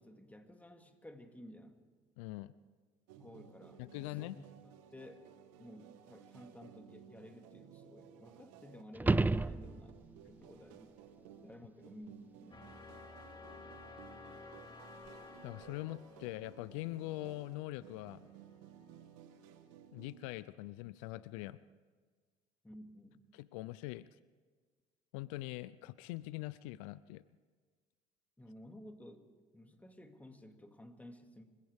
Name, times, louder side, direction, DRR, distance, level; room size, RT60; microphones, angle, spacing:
voice 1, 0.0-1.8 3.2-5.3 5.6-10.0 10.3-11.0 11.4-12.8 22.6-23.2 28.4-29.3 29.5-31.4, left 1 dB, 10° left, 5 dB, 2.2 m, -54 dB
voice 2, 2.2-2.5 3.8-4.4 15.4-18.2 19.9-21.6 23.3-24.1 25.1-27.2, left 18 dB, 85° left, 18 dB, 0.4 m, -43 dB
sound 1, 3.1-20.5, right 9 dB, 85° right, 1.3 m, -57 dB
sound 2, 8.9-10.2 15.1-15.2, right 2 dB, 10° right, 0.4 m, -31 dB
sound 3, 12.5-18.5, left 3 dB, 25° left, 2.2 m, -54 dB
25.5 x 16.0 x 3.5 m, 1.5 s
supercardioid pair, 75°, 16 cm